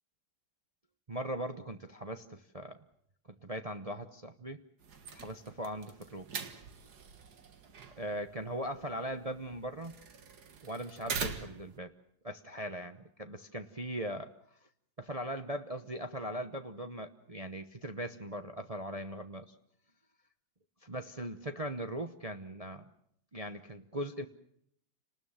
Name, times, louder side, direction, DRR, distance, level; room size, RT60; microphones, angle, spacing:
voice 1, 1.1-2.8 3.3-4.6 5.1-6.3 8.0-9.9 10.6-11.9 12.2-14.3 15.0-19.5 20.8-22.8 23.3-24.3, right 1 dB, 30° right, 7 dB, 0.7 m, -39 dB
sound 1, 4.8-11.8, right 5 dB, 55° right, 2.0 m, -44 dB
30.0 x 19.5 x 7.3 m, 0.71 s
omnidirectional pair, 2.1 m